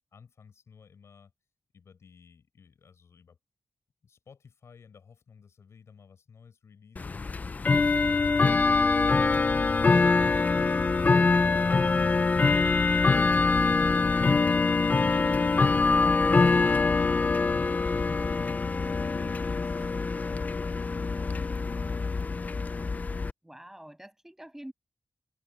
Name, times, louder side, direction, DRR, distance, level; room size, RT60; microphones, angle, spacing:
voice 1, 0.1-1.3 1.7-3.4 4.0-10.1 10.5-10.8, left 6 dB, 75° left, 6.9 m, -56 dB
Bell / Tick-tock, 7.0-23.3, left 4 dB, 35° left, 0.4 m, -24 dB
voice 2, 23.4-24.7, right 1 dB, 10° right, 7.2 m, -46 dB
open air
wide cardioid pair, 110°, 5 cm